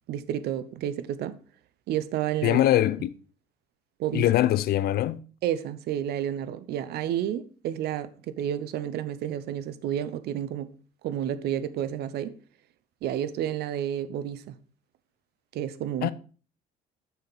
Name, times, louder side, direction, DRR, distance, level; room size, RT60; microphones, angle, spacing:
voice 1, 0.1-1.4 1.9-2.6 4.0-4.3 5.4-10.7 11.0-12.4 13.0-14.5 15.5-16.1, right 10 dB, 70° right, 0.7 m, -30 dB
voice 2, 2.4-3.1 4.1-5.2 16.0-16.1, left 13 dB, 65° left, 0.5 m, -22 dB
6.8 x 6.4 x 4.0 m
cardioid pair, 110°, 17 cm